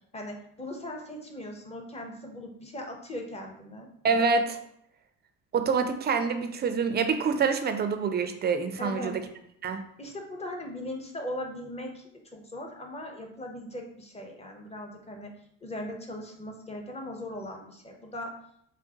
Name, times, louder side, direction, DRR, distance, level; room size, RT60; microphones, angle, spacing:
voice 1, 0.1-3.9 8.8-9.2 10.0-15.3 15.6-18.3, left 1 dB, 20° left, 2 dB, 0.7 m, -39 dB
voice 2, 4.0-4.6 5.5-9.2 9.6-9.8, right 5 dB, 30° right, 8 dB, 0.4 m, -26 dB
3.7 x 2.0 x 2.8 m, 0.71 s
supercardioid pair, 70°, 35 cm